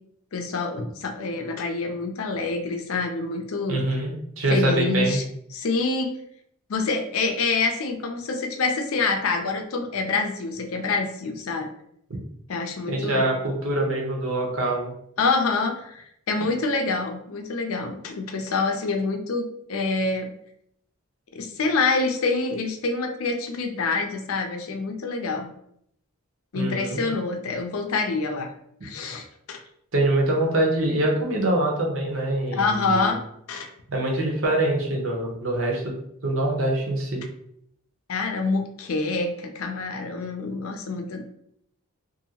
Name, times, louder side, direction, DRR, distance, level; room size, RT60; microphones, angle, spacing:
voice 1, 0.3-3.8 4.5-5.2 5.5-6.1 6.7-11.7 12.5-13.3 15.2-20.3 21.3-25.5 26.5-28.5 28.8-29.6 32.5-33.2 33.5-33.7 38.1-41.2, left 3 dB, 80° left, 4 dB, 0.5 m, -26 dB
voice 2, 3.7-5.2 12.9-14.9 26.5-27.1 29.9-33.1 33.9-35.9 36.2-37.2, right 1 dB, 65° right, -1 dB, 0.8 m, -24 dB
2.8 x 2.6 x 2.8 m, 0.71 s
head